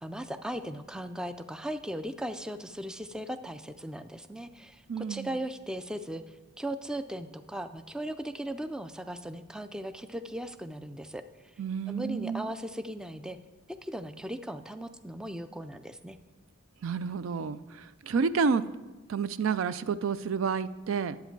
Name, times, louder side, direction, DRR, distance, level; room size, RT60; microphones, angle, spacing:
voice 1, 0.0-11.2 11.9-13.4 13.8-16.2, right 1 dB, 5° right, 10 dB, 0.3 m, -38 dB
voice 2, 4.9-5.3 11.6-12.5 16.8-18.6 19.1-21.2, right 5 dB, 75° right, 14 dB, 0.4 m, -30 dB
10.5 x 7.9 x 4.6 m, 1.2 s
head